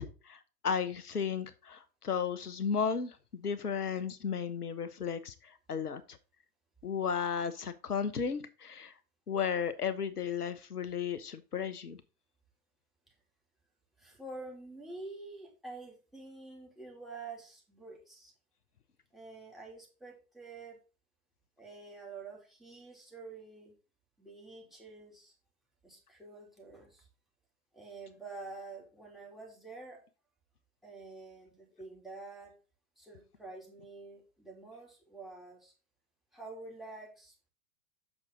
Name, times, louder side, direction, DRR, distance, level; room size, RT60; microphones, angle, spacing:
voice 1, 0.0-6.2 6.8-8.9 9.3-12.0, left 6 dB, 80° left, 13 dB, 1.0 m, -34 dB
voice 2, 14.0-18.3 19.1-20.8 21.6-23.7 24.2-25.3 25.8-27.1 27.7-30.0 30.8-32.6 33.0-35.7 36.3-37.5, right 3 dB, ahead, 1 dB, 3.1 m, -48 dB
7.4 x 6.3 x 3.9 m, 0.33 s
figure-of-eight pair, 100°, 45 cm